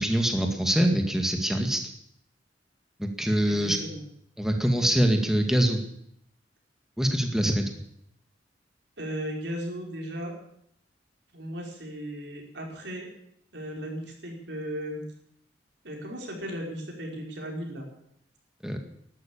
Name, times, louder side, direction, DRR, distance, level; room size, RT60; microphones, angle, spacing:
voice 1, 0.0-1.8 3.0-3.8 4.4-5.8 7.0-7.6 18.6-18.8, right 1 dB, 5° right, 4 dB, 2.0 m, -24 dB
voice 2, 3.5-4.0 9.0-10.3 11.3-13.1 13.5-15.0 15.8-17.9, equal, 70° right, 0 dB, 5.3 m, -36 dB
12.5 x 12.0 x 8.7 m, 0.73 s
head